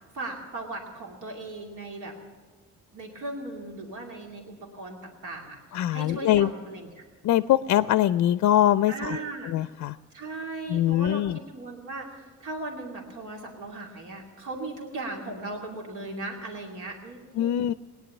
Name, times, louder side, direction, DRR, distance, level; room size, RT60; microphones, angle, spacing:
voice 1, 0.1-2.2 2.9-6.9 8.9-9.5 10.1-17.4, right 2 dB, 85° right, 0 dB, 2.6 m, -37 dB
voice 2, 5.7-6.5 7.2-9.2 9.5-10.0 10.7-11.4 17.4-17.7, left 12 dB, 65° left, 14 dB, 0.5 m, -23 dB
18.5 x 10.5 x 7.2 m, 1.5 s
cardioid pair, 90°, 30 cm